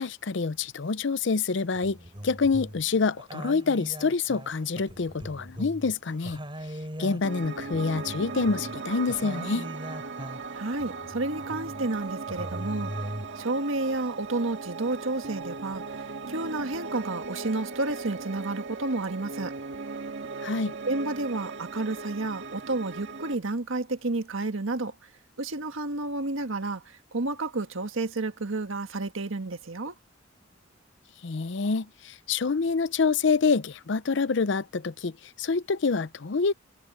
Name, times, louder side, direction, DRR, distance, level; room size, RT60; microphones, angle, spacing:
voice 1, 0.0-2.0 2.2-6.4 7.0-9.7 20.4-20.7 31.2-35.1 35.4-36.5, left 4 dB, 65° left, 0.6 m, -26 dB
sound 1, 1.6-2.9 3.2-5.9 6.2-10.5 10.8-11.9 12.3-13.4, equal, 25° right, 4.4 m, -40 dB
Piano, 7.2-23.3, right 4 dB, 65° right, 1.9 m, -38 dB
voice 2, 10.5-12.9 13.4-15.8 16.3-19.5 20.9-24.9 25.4-29.9, right 2 dB, 85° right, 1.6 m, -31 dB
head